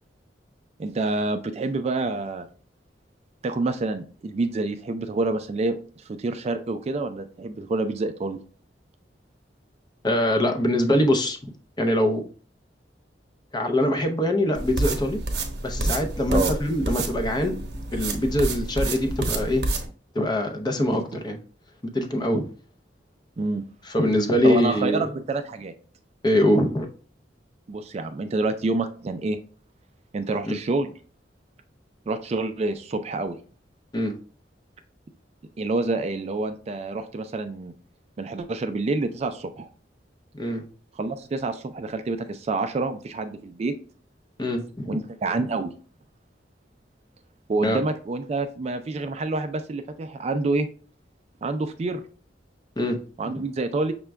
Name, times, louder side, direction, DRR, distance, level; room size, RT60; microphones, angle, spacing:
voice 1, 0.8-2.5 3.4-8.4 16.3-16.5 20.9-21.0 23.4-23.7 24.4-25.7 27.7-29.4 30.1-30.9 32.1-33.4 35.6-37.7 38.2-39.7 41.0-43.7 44.9-45.7 47.5-50.7 51.4-52.0 53.2-53.9, right 3 dB, 35° right, 8 dB, 0.3 m, -27 dB
voice 2, 10.0-11.4 11.8-12.2 13.5-15.2 15.6-17.6 17.9-19.6 20.1-21.4 21.9-22.4 23.9-25.1 26.2-26.9 30.5-30.6 33.9-34.1 40.3-40.6 44.4-45.0 47.6-47.8 52.8-53.0 53.2-53.3, left 1 dB, 25° left, 4 dB, 0.6 m, -23 dB
sound 1, 14.5-19.9, right 2 dB, 65° right, 0.9 m, -28 dB
5.9 x 2.2 x 3.3 m, 0.40 s
head